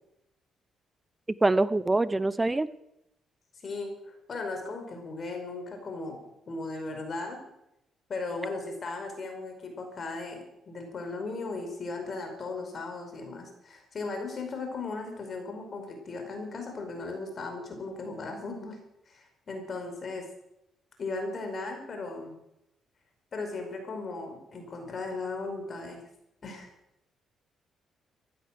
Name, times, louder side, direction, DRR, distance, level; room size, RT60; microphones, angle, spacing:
voice 1, 1.4-2.7, right 2 dB, 15° right, 16 dB, 0.9 m, -24 dB
voice 2, 3.6-7.4 8.1-18.8 19.1-20.2 21.0-22.4 23.3-26.0 26.4-26.7, left 3 dB, 45° left, 4 dB, 5.1 m, -37 dB
15.0 x 12.0 x 7.7 m, 0.83 s
cardioid pair, 90°, 0 cm